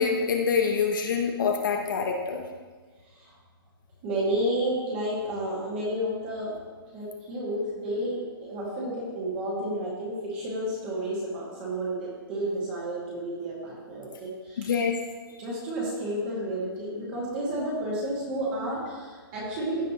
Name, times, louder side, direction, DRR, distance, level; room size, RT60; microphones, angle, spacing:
voice 1, 0.0-2.4 14.6-15.0, left 6 dB, 55° left, 2 dB, 1.0 m, -25 dB
voice 2, 4.0-6.6 6.9-14.7 15.4-19.9, right 1 dB, 25° right, -6 dB, 2.1 m, -31 dB
15.0 x 5.1 x 3.1 m, 1.4 s
hypercardioid pair, 165°, 13 cm